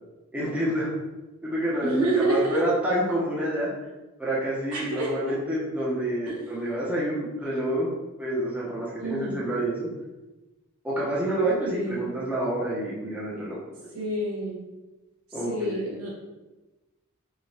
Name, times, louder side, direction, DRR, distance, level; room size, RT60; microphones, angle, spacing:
voice 1, 0.3-0.9 1.4-3.7 4.2-7.9 8.2-9.9 10.8-13.6 15.3-15.9, right 1 dB, 5° right, -7 dB, 0.8 m, -28 dB
voice 2, 1.8-2.6 4.7-5.3 6.3-6.4 9.0-9.4 11.6-12.1 13.9-14.6 15.4-16.1, right 1 dB, 90° right, -5 dB, 1.3 m, -28 dB
4.7 x 2.3 x 2.7 m, 1.1 s
head